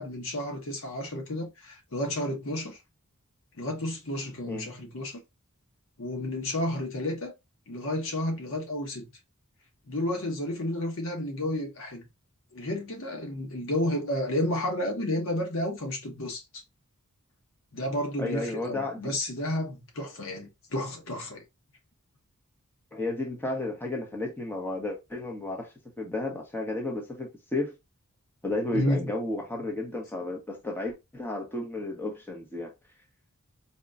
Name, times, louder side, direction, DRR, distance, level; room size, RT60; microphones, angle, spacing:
voice 1, 0.0-2.8 3.6-5.2 6.0-7.3 7.7-9.1 9.9-12.1 12.5-16.6 17.7-21.4 28.7-29.1, left 1 dB, 65° left, 1.2 m, -31 dB
voice 2, 18.2-19.0 22.9-25.7 26.0-27.7 28.4-32.7, left 2 dB, 10° left, 1.0 m, -32 dB
4.1 x 3.0 x 2.5 m
head